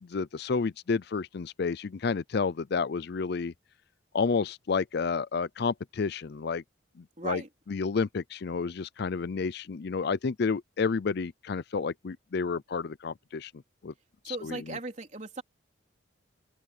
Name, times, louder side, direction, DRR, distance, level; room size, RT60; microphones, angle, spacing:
voice 1, 0.0-3.5 4.1-6.6 7.0-7.4 7.7-13.5 13.8-13.9 14.2-14.8, left 5 dB, 55° left, 0.5 m, -30 dB
voice 2, 7.2-7.5 14.2-15.4, right 3 dB, 40° right, 3.8 m, -37 dB
open air
head